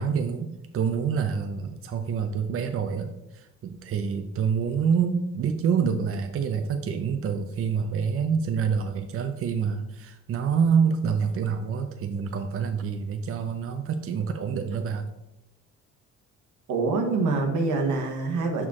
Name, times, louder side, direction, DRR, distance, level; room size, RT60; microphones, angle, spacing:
voice 1, 0.0-15.1, right 6 dB, 50° right, 7 dB, 0.6 m, -27 dB
voice 2, 16.7-18.7, right 3 dB, 85° right, 3 dB, 1.2 m, -25 dB
6.4 x 4.5 x 3.6 m, 0.94 s
cardioid pair, 90°, 30 cm